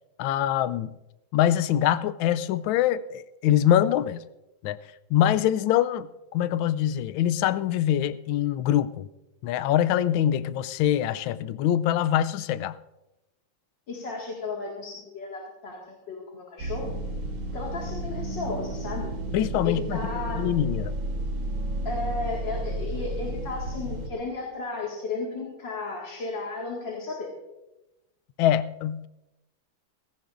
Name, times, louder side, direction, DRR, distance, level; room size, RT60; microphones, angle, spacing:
voice 1, 0.2-0.9 1.3-4.2 4.6-4.8 5.1-9.1 9.4-12.8 19.3-20.0 20.4-21.0 28.4-29.1, left 11 dB, 75° left, 15 dB, 1.3 m, -24 dB
voice 2, 13.9-16.9 17.5-19.1 19.6-20.4 21.8-27.3, left 3 dB, 60° left, -3 dB, 2.6 m, -34 dB
sound 1, 16.6-24.1, right 1 dB, 65° right, 2.2 m, -32 dB
19.5 x 17.0 x 2.5 m, 0.99 s
omnidirectional pair, 2.4 m